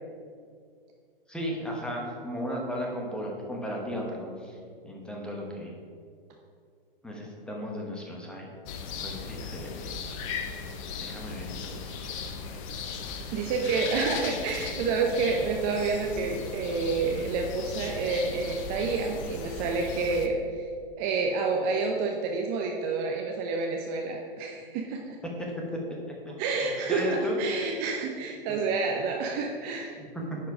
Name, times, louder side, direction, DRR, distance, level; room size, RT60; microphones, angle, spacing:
voice 1, 1.3-4.6 4.8-5.7 7.0-8.5 8.9-9.9 11.0-12.4 25.7-25.8 26.1-26.3 26.6-27.4 30.0-30.4, equal, 5° left, -2 dB, 1.2 m, -35 dB
sound 1, 8.7-20.3, left 5 dB, 35° left, 0.7 m, -37 dB
voice 2, 13.3-20.7 21.0-25.2 26.4-30.0, right 4 dB, 30° right, 1 dB, 0.7 m, -29 dB
10.5 x 4.6 x 4.8 m, 2.2 s
hypercardioid pair, 120°, 29 cm